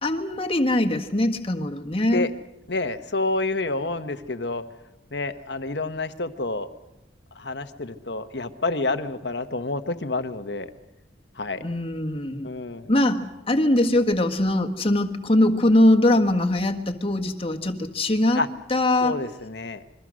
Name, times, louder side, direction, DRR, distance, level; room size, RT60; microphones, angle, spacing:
voice 1, 0.0-2.3 11.6-12.5 12.9-18.4 18.7-19.2, left 1 dB, 30° left, 5 dB, 1.6 m, -22 dB
voice 2, 2.7-4.6 5.1-6.7 7.3-10.7 11.4-11.6 12.4-12.9 18.3-18.5 19.0-19.8, left 2 dB, 60° left, 9 dB, 1.3 m, -28 dB
27.5 x 23.0 x 6.4 m, 0.92 s
head